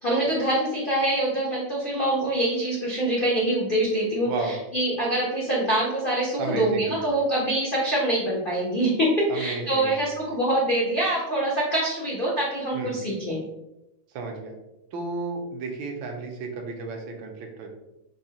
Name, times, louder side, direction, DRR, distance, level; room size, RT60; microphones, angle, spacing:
voice 1, 0.0-4.3 4.7-13.4, right 1 dB, 75° left, -5 dB, 0.5 m, -24 dB
voice 2, 4.2-4.6 6.4-7.1 9.3-10.2 12.7-13.0 14.1-14.5 14.9-17.7, right 3 dB, 80° right, 2 dB, 1.4 m, -33 dB
3.9 x 2.7 x 2.8 m, 0.90 s
omnidirectional pair, 2.1 m